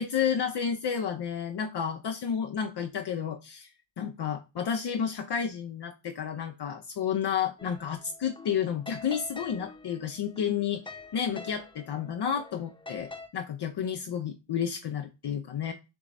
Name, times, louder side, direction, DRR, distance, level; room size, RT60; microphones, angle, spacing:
voice 1, 0.0-3.7 4.0-10.8 11.1-15.7, left 8 dB, 60° left, 0.6 m, -31 dB
sound 1, 7.6-13.3, left 3 dB, 10° left, 0.9 m, -46 dB
7.0 x 3.0 x 2.5 m
cardioid pair, 45°, 46 cm